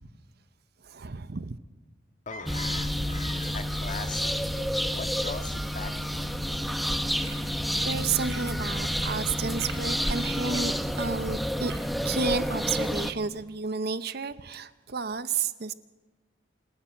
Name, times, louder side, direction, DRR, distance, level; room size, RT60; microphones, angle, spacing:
voice 1, 0.8-1.6 7.8-11.7 12.0-15.7, right 5 dB, 60° right, 13 dB, 0.8 m, -31 dB
voice 2, 2.2-4.3 4.9-6.3, left 4 dB, 45° left, 6 dB, 1.7 m, -40 dB
sound 1, 2.5-13.1, equal, ahead, 0.8 m, -29 dB
sound 2, 6.1-12.6, right 6 dB, 85° right, 2.6 m, -48 dB
27.5 x 13.0 x 7.5 m, 1.2 s
head